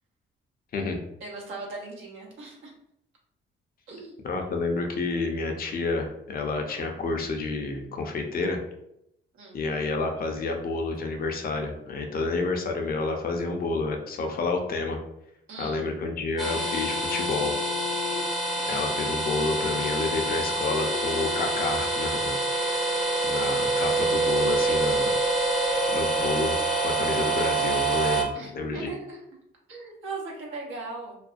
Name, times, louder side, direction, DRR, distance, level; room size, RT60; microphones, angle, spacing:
voice 1, 1.2-2.7 3.9-4.2 9.3-9.6 15.5-15.9 18.6-18.9 28.3-29.2 29.7-31.2, right 3 dB, 80° right, -2 dB, 0.8 m, -38 dB
voice 2, 4.2-8.6 9.5-15.0 15.6-17.5 18.7-22.3 22.7-22.8 23.2-25.1 25.9-28.9, left 3 dB, 50° left, 3 dB, 0.5 m, -29 dB
sound 1, 16.4-28.2, right 2 dB, ahead, 0.5 m, -26 dB
2.4 x 2.1 x 2.4 m, 0.79 s
cardioid pair, 90°, 20 cm